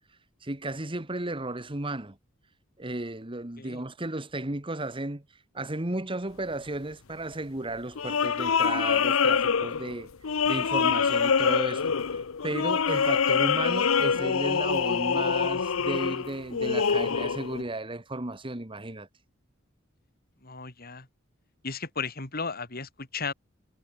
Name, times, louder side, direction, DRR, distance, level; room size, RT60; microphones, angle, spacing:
voice 1, 0.4-2.2 2.8-5.2 5.5-10.1 10.5-19.1, right 2 dB, 25° right, 1.7 m, -34 dB
sound 1, 7.9-17.6, left 6 dB, 90° left, 0.7 m, -25 dB
voice 2, 20.4-21.1 21.6-23.3, left 4 dB, 50° left, 3.2 m, -35 dB
head